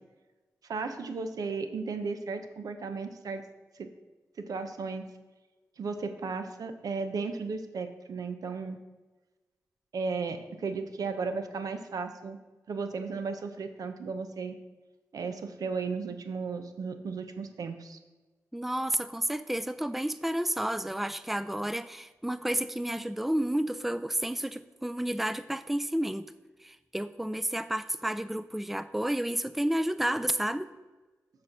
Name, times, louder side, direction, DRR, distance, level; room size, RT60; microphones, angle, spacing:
voice 1, 0.7-3.4 3.7-3.9 4.4-5.0 5.8-8.8 9.9-12.4 12.7-14.6 15.1-18.0, right 4 dB, 80° right, 8 dB, 0.7 m, -35 dB
voice 2, 18.5-26.3 26.6-30.7, right 1 dB, 5° right, 14 dB, 0.4 m, -31 dB
7.5 x 4.3 x 6.0 m, 1.2 s
cardioid pair, 45°, 6 cm